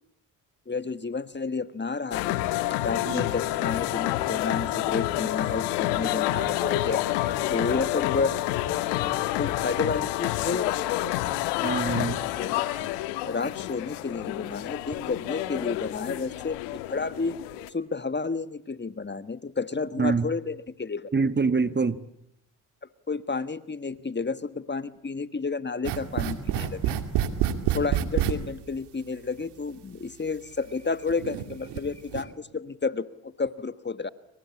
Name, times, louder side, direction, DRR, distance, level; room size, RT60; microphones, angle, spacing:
voice 1, 0.7-2.4 2.8-8.3 8.6-8.9 9.4-10.8 12.1-12.7 13.2-17.4 17.7-21.1 23.1-27.0 27.7-34.1, left 4 dB, 25° left, 1.5 m, -31 dB
sound 1, 2.1-17.7, left 15 dB, 90° left, 1.4 m, -28 dB
voice 2, 11.6-12.2 20.0-20.3 21.1-22.0, right 4 dB, 25° right, 1.4 m, -25 dB
sound 2, 25.8-28.3 29.4-29.5 30.2-30.3 31.1-31.8 32.1-32.2, right 10 dB, 80° right, 2.4 m, -27 dB
27.0 x 25.0 x 8.6 m
supercardioid pair, 55°, 40 cm